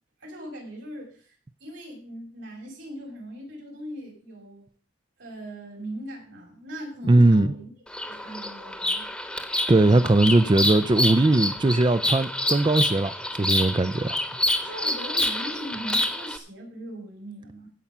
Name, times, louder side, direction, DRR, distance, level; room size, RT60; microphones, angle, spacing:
voice 1, 0.2-4.6 5.2-9.1 14.7-17.7, right 1 dB, 85° right, 5.8 m, -39 dB
voice 2, 7.0-7.5 9.7-14.2 14.5-14.7, right 2 dB, 25° right, 0.4 m, -20 dB
Bird vocalization bird call bird song, 7.9-16.4, left 1 dB, 5° left, 1.1 m, -28 dB
16.0 x 5.6 x 6.0 m
head